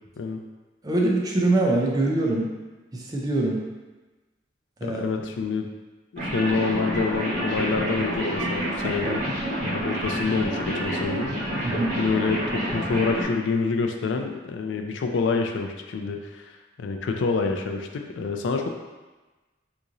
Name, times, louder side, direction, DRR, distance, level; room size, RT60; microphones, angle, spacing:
voice 1, 0.8-2.6 2.9-3.7 4.8-5.0 11.6-12.0, right 2 dB, 20° right, -2 dB, 0.4 m, -23 dB
voice 2, 4.8-5.7 6.1-9.3 9.6-11.7 12.0-18.7, left 4 dB, 70° left, 4 dB, 0.3 m, -27 dB
sound 1, 6.2-13.2, equal, 40° right, 1.5 m, -28 dB
3.7 x 3.0 x 2.5 m, 1.2 s
head